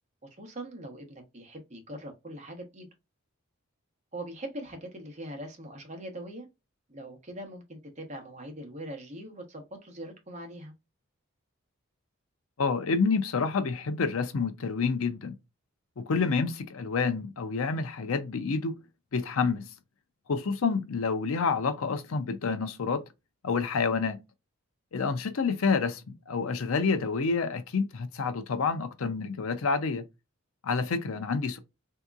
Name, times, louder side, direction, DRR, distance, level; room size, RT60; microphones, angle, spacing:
voice 1, 0.2-2.9 4.1-6.5 6.9-10.7, right 1 dB, 35° right, 1.0 m, -42 dB
voice 2, 12.6-15.4 16.0-18.8 19.1-19.7 20.3-23.0 23.4-24.2 24.9-30.0 30.6-31.6, left 4 dB, 75° left, 0.5 m, -28 dB
3.6 x 2.8 x 2.4 m
head